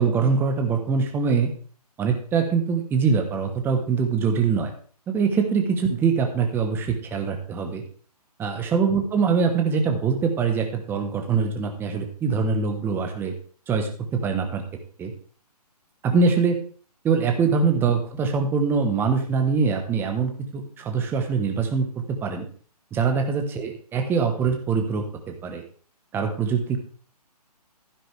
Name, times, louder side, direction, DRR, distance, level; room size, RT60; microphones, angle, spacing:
voice 1, 0.0-1.5 2.0-4.7 5.1-7.8 8.4-13.3 13.7-14.6 15.0-15.1 16.0-16.6 17.0-21.9 22.2-22.4 22.9-25.6 26.1-26.8, right 5 dB, 10° right, 4 dB, 1.1 m, -23 dB
11.5 x 10.0 x 3.4 m, 0.42 s
hypercardioid pair, 145°, 21 cm